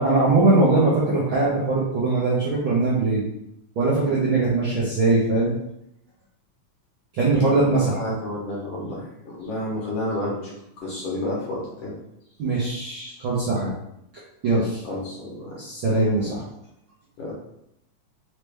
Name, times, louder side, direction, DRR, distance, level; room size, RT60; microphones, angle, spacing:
voice 1, 0.0-3.2 3.8-5.5 7.1-8.2 12.4-13.7 14.4-14.8 15.6-16.4, right 3 dB, 65° right, -7 dB, 1.2 m, -21 dB
voice 2, 7.6-10.4 10.8-11.9 14.8-15.6 17.2-17.3, left 1 dB, 65° left, -6 dB, 1.7 m, -30 dB
4.9 x 3.2 x 3.3 m, 0.79 s
omnidirectional pair, 3.6 m